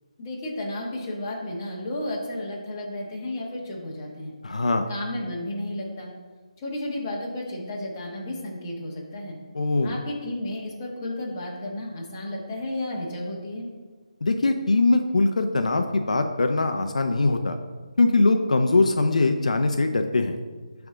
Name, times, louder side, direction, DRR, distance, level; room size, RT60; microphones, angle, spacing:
voice 1, 0.2-4.3 4.9-6.1 6.6-9.4 9.8-13.7, left 1 dB, 20° left, -4 dB, 1.3 m, -33 dB
voice 2, 4.4-4.9 9.5-10.0 14.2-17.6 18.0-20.4, left 3 dB, 75° left, 6 dB, 0.6 m, -22 dB
9.9 x 3.5 x 3.7 m, 1.4 s
hypercardioid pair, 170°, 4 cm